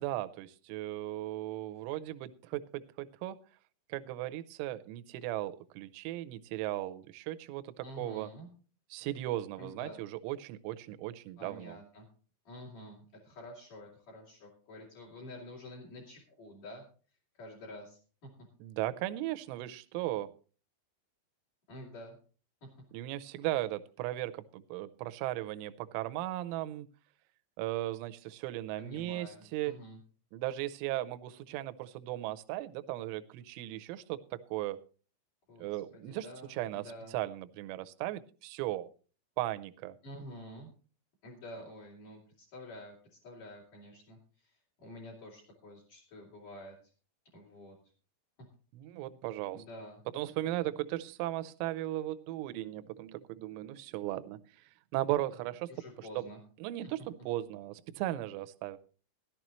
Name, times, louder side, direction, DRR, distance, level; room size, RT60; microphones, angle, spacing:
voice 1, 0.0-3.4 3.9-8.3 8.9-11.8 18.6-20.3 22.9-26.9 27.6-29.7 30.3-34.8 35.6-38.9 39.4-40.0 48.7-49.7 50.1-54.6 54.9-56.3 56.6-58.8, right 15 dB, 80° right, 11 dB, 2.9 m, -37 dB
voice 2, 7.8-8.5 9.6-10.0 11.4-12.1 12.5-16.8 17.3-18.3 21.7-22.2 22.6-22.7 28.8-30.0 35.5-37.2 40.0-40.7 41.2-44.5 44.8-46.7 47.3-47.8 49.5-50.0 55.7-56.4, left 1 dB, 45° left, 0 dB, 4.2 m, -49 dB
16.5 x 12.0 x 3.0 m, 0.38 s
omnidirectional pair, 6.0 m